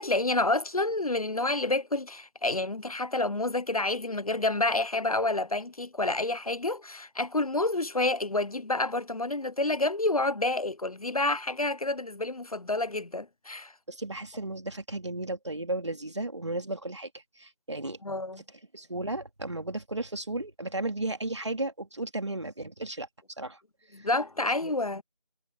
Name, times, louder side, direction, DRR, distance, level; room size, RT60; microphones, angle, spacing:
voice 1, 0.0-13.7 18.0-18.4 23.9-25.0, left 2 dB, 60° left, 0.8 m, -29 dB
voice 2, 13.9-18.0 18.7-23.1 23.4-23.6 24.0-24.1 24.6-24.7, right 2 dB, 45° right, 2.6 m, -34 dB
figure-of-eight pair, 175°, 21 cm